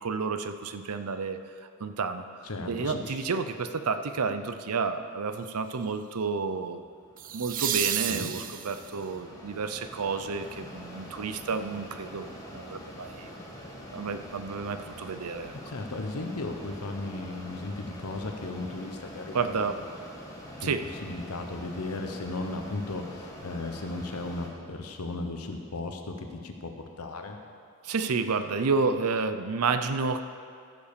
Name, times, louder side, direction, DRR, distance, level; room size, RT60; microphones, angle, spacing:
voice 1, 0.0-1.4 1.8-2.2 2.7-6.8 7.3-13.3 13.9-15.6 19.3-19.8 20.6-20.9 27.8-30.2, right 4 dB, 80° right, 9 dB, 0.6 m, -30 dB
voice 2, 2.4-3.2 8.1-8.3 15.6-19.7 20.6-20.7 21.0-27.4, left 2 dB, 80° left, 4 dB, 1.1 m, -36 dB
sound 1, 4.1-4.5 7.2-9.0 11.9-12.0, right 11 dB, 35° right, 0.4 m, -31 dB
Mechanisms, 6.6-24.5, equal, 15° left, 1.5 m, -45 dB
15.0 x 5.4 x 6.8 m, 2.3 s
head